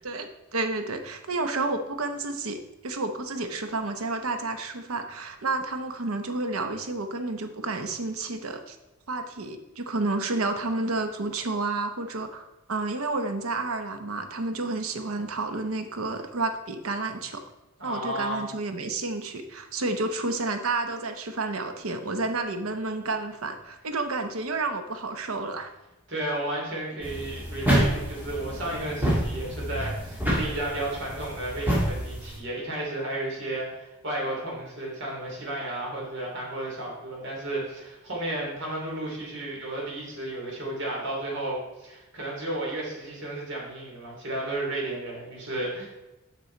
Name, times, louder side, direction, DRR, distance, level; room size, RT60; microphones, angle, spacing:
voice 1, 0.0-8.8 9.1-17.4 17.8-25.7, right 3 dB, 85° right, 7 dB, 0.8 m, -30 dB
voice 2, 17.8-18.5 26.1-45.9, right 1 dB, 60° right, -3 dB, 2.7 m, -33 dB
sound 1, 27.0-32.4, equal, 10° right, 1.8 m, -28 dB
6.7 x 6.2 x 4.4 m, 0.99 s
head